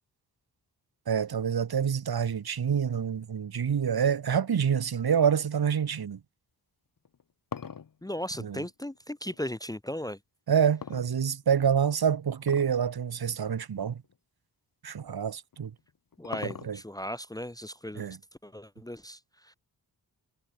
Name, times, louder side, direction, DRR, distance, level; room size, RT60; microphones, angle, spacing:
voice 1, 1.1-6.2 8.4-8.6 10.5-14.0 14.8-15.7 16.4-16.8 18.0-18.2, right 7 dB, 70° right, 3.0 m, -27 dB
sound 1, 7.0-9.4 10.8-11.7 12.4-12.8 13.2-13.3 14.0-14.2 15.5-17.0, left 7 dB, 55° left, 2.4 m, -41 dB
voice 2, 8.0-10.2 16.2-18.2 18.4-19.5, left 1 dB, 10° left, 1.0 m, -37 dB
wide cardioid pair, 95°, 40 cm